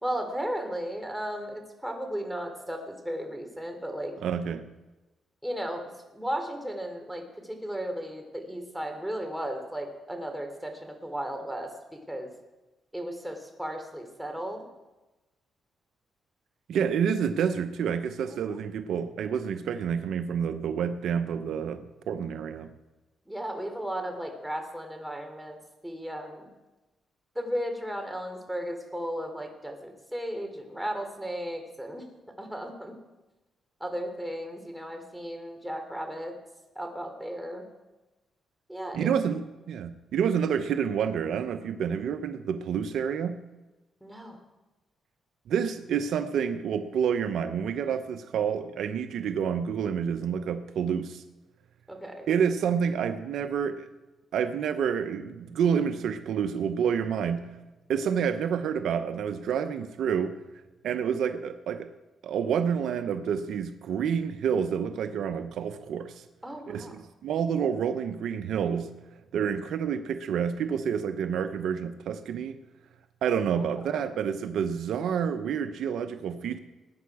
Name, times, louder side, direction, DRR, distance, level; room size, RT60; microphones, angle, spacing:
voice 1, 0.0-4.1 5.4-5.8 6.1-12.3 12.9-14.6 18.3-18.6 23.3-25.6 25.8-26.5 27.3-32.0 32.4-32.9 33.8-36.3 36.7-37.6 38.7-39.1 44.0-44.4 51.9-52.3 66.4-66.9 73.8-74.0, equal, 5° right, 3 dB, 3.2 m, -35 dB
voice 2, 4.2-4.6 16.7-22.7 38.9-43.4 45.5-51.2 52.3-53.9 54.3-57.4 57.9-60.4 60.8-61.9 62.2-66.2 66.7-68.9 69.3-72.6 73.2-76.6, right 7 dB, 80° right, 9 dB, 0.8 m, -28 dB
21.0 x 9.5 x 4.9 m, 1.1 s
cardioid pair, 75°, 0 cm